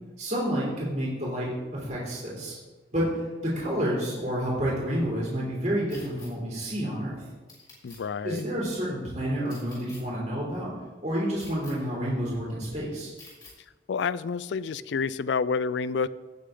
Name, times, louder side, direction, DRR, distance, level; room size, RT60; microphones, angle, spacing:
voice 1, 0.2-2.6 2.9-7.2 8.2-10.7 11.0-13.1, equal, 40° right, -6 dB, 3.1 m, -29 dB
sound 1, 5.9-6.3 7.5-8.0 9.5-10.0 11.4-11.7 13.2-13.5, left 3 dB, 25° left, 4.2 m, -48 dB
voice 2, 7.8-8.4 13.9-16.1, left 5 dB, 75° left, 17 dB, 0.4 m, -28 dB
17.5 x 6.6 x 3.9 m, 1.3 s
head